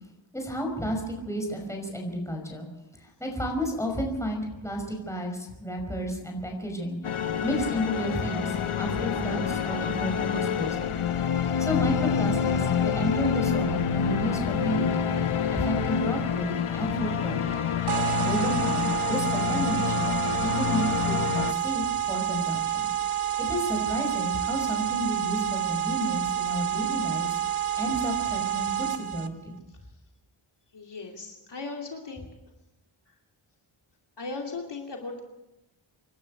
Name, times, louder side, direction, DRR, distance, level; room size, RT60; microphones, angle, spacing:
voice 1, 0.3-2.7 3.0-10.9 11.6-15.1 15.5-17.6 18.1-22.9 23.4-27.4 27.8-29.5, equal, 5° left, 1 dB, 5.6 m, -32 dB
sound 1, 7.0-21.5, left 8 dB, 85° left, 1.2 m, -27 dB
sound 2, 17.9-29.3, right 10 dB, 90° right, 1.4 m, -29 dB
voice 2, 30.7-32.2 34.2-35.2, left 3 dB, 55° left, 1 dB, 2.7 m, -37 dB
26.5 x 12.0 x 8.3 m, 0.94 s
wide cardioid pair, 145°, 49 cm